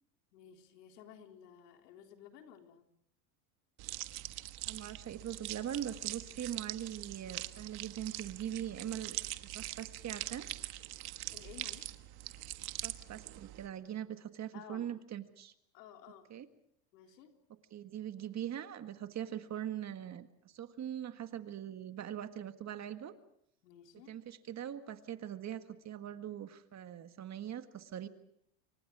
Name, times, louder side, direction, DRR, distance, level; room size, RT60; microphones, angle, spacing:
voice 1, 0.3-2.8 11.3-12.0 14.5-14.9 15.7-16.3 16.9-17.3 23.6-24.1, left 9 dB, 85° left, 3 dB, 3.8 m, -54 dB
sound 1, 3.8-13.7, right 16 dB, 50° right, 1.5 m, -43 dB
voice 2, 4.7-10.5 12.8-15.5 16.3-16.5 17.7-23.1 24.1-28.1, right 10 dB, 35° right, 9 dB, 1.7 m, -42 dB
29.0 x 25.0 x 4.9 m, 0.71 s
supercardioid pair, 115°, 47 cm